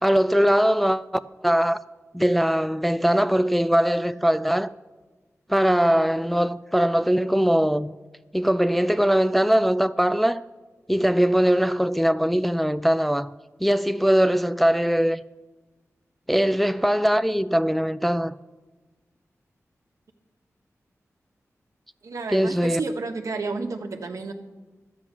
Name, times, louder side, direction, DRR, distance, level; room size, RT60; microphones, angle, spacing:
voice 1, 0.0-1.8 2.1-4.7 5.5-7.9 8.3-10.4 10.9-13.3 13.6-15.2 16.3-18.4 22.3-22.8, equal, ahead, 0.3 m, -21 dB
voice 2, 22.0-24.3, right 3 dB, 75° right, 1.2 m, -31 dB
12.0 x 8.5 x 6.0 m
wide cardioid pair, 75°, 6 cm